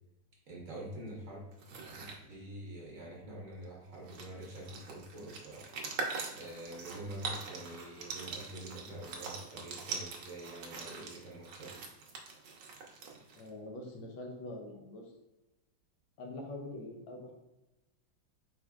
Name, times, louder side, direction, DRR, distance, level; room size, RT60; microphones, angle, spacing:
voice 1, 0.5-1.4 1.7-5.7 6.3-11.8, right 1 dB, 50° right, -4 dB, 1.3 m, -46 dB
sound 1, 1.5-2.2 3.6-3.7 3.9-13.5, right 4 dB, 75° right, 1.5 m, -43 dB
voice 2, 13.4-15.1 16.2-17.3, left 2 dB, 85° left, 1 dB, 1.6 m, -44 dB
4.6 x 4.4 x 2.3 m, 0.96 s
omnidirectional pair, 2.2 m